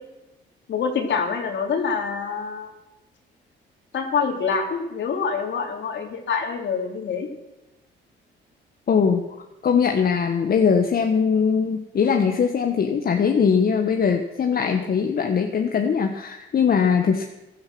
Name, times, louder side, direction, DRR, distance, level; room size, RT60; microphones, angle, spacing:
voice 1, 0.7-2.7 3.9-7.3, left 5 dB, 65° left, 3 dB, 3.2 m, -26 dB
voice 2, 8.9-9.2 9.6-17.2, left 6 dB, 50° left, 4 dB, 1.4 m, -21 dB
15.5 x 13.0 x 6.3 m, 1.0 s
cardioid pair, 90°, 20 cm